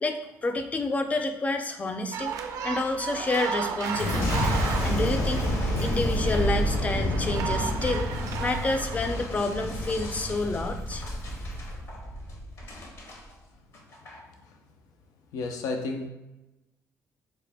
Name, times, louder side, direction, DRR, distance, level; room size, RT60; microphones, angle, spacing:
voice 1, 0.0-2.3 2.6-4.4 4.8-5.5 5.8-8.1 8.4-11.0, left 2 dB, 25° left, 6 dB, 0.4 m, -29 dB
sound 1, 2.1-9.2, right 7 dB, 70° right, 0.4 m, -35 dB
Boom, 3.9-13.2 13.7-14.2, equal, 50° left, 0.8 m, -29 dB
voice 2, 15.3-16.1, left 3 dB, 85° left, 3 dB, 0.5 m, -31 dB
4.2 x 2.1 x 3.3 m, 1.0 s
cardioid pair, 110°, 6 cm